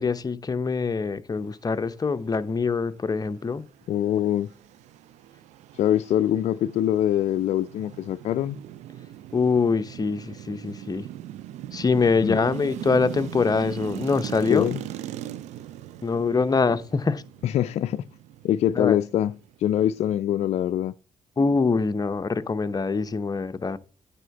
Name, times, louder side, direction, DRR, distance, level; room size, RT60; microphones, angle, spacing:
voice 1, 0.0-3.7 9.3-11.0 11.7-14.8 16.0-17.2 18.8-19.0 21.4-23.8, left 4 dB, 35° left, 0.8 m, -24 dB
sound 1, 3.4-20.2, right 12 dB, 85° right, 0.5 m, -40 dB
voice 2, 3.9-4.5 5.7-8.6 12.2-12.4 14.5-14.8 17.4-18.0 18.4-19.3 19.6-20.9, left 11 dB, 70° left, 0.4 m, -23 dB
9.1 x 3.6 x 7.0 m
supercardioid pair, 55°, 12 cm